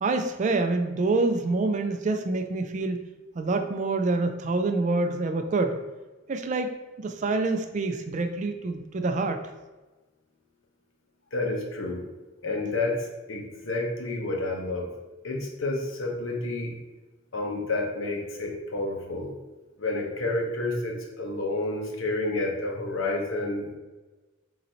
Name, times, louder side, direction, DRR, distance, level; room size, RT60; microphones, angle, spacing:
voice 1, 0.0-3.0 3.4-5.8 6.3-9.4, right 3 dB, 40° right, 6 dB, 0.3 m, -26 dB
voice 2, 11.3-12.0 12.4-14.9 15.2-16.7 17.3-19.3 19.8-23.8, left 2 dB, 80° left, 0 dB, 0.9 m, -30 dB
3.9 x 2.7 x 4.3 m, 1.2 s
head